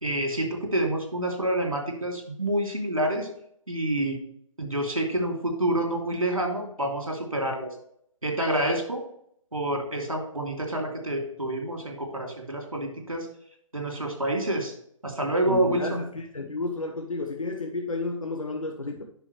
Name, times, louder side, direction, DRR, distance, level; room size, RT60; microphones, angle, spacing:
voice 1, 0.0-3.3 3.7-4.2 4.6-7.7 8.2-9.0 9.5-13.3 13.7-14.7 15.0-16.0, right 1 dB, 85° right, 2 dB, 2.9 m, -28 dB
voice 2, 15.5-19.0, left 2 dB, 80° left, 3 dB, 1.2 m, -32 dB
9.8 x 6.1 x 3.2 m, 0.67 s
figure-of-eight pair, 140°, 17 cm